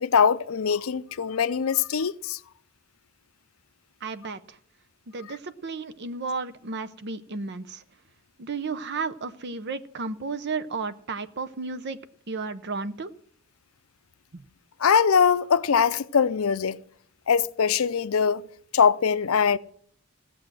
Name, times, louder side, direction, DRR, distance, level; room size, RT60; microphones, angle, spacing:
voice 1, 0.0-2.4 14.8-16.8 17.3-18.5 18.7-19.6, left 6 dB, 80° left, 0.5 m, -22 dB
voice 2, 4.0-4.6 5.1-7.8 8.4-12.0 12.3-13.1 14.3-14.4, right 4 dB, 55° right, 0.7 m, -33 dB
17.0 x 7.7 x 6.1 m
head